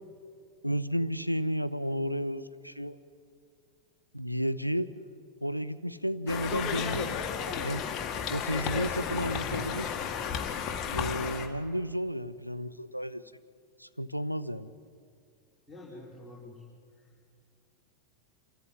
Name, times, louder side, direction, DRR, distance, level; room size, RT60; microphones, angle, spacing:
voice 1, 0.6-3.0 4.1-4.9 5.4-7.2 7.5-7.9 8.3-10.0 10.9-13.2 13.8-14.7, equal, 90° left, 14 dB, 0.7 m, -32 dB
Conversation, 6.3-11.5, left 7 dB, 30° left, 2.2 m, -33 dB
voice 2, 15.7-16.5, left 1 dB, 5° left, -8 dB, 5.5 m, -46 dB
27.0 x 14.0 x 9.8 m, 2.2 s
figure-of-eight pair, 90°, 0 cm